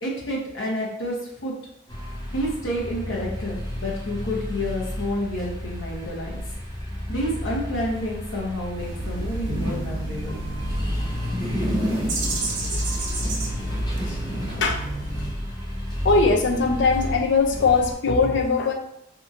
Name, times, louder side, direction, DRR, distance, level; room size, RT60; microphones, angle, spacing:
voice 1, 0.0-1.5 2.3-6.4 7.1-10.4, equal, 85° left, -3 dB, 0.9 m, -29 dB
sound 1, 1.9-17.9, equal, 20° left, 0.7 m, -31 dB
sound 2, 8.8-15.3, right 1 dB, 75° right, 0.8 m, -31 dB
sound 3, 9.5-13.2, right 1 dB, 40° right, 0.7 m, -38 dB
voice 2, 16.0-18.7, left 4 dB, 65° left, 3 dB, 0.5 m, -20 dB
2.8 x 2.6 x 2.5 m, 0.76 s
head